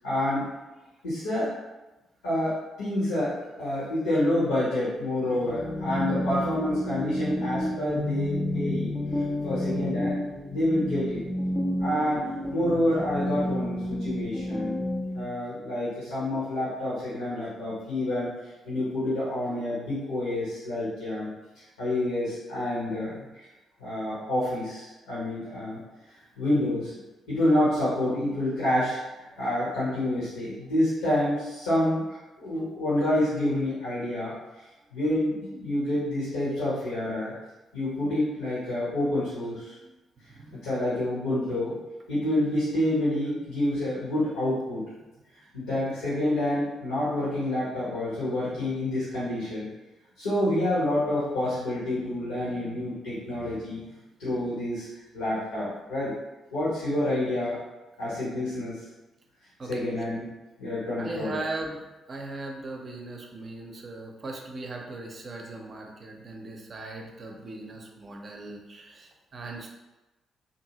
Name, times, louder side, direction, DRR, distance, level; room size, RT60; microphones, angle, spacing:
voice 1, 0.0-0.5 1.0-1.5 2.2-10.2 10.5-11.2 11.8-12.2 12.5-14.7 15.1-18.3 18.6-21.3 21.8-23.2 23.8-25.8 26.4-26.9 27.3-34.4 34.9-37.3 37.7-39.7 40.6-41.8 42.1-44.8 45.3-49.7 50.2-53.8 54.2-54.9 55.1-56.1 56.5-57.6 58.0-58.8 59.7-60.3 60.6-61.4, left 1 dB, 80° left, -10 dB, 1.0 m, -28 dB
sound 1, 5.3-15.2, left 1 dB, 30° left, 0.6 m, -30 dB
voice 2, 40.3-40.7 59.6-59.8 61.0-69.7, right 2 dB, 45° right, 1 dB, 0.6 m, -39 dB
2.7 x 2.6 x 2.8 m, 1.1 s
hypercardioid pair, 40°, 0 cm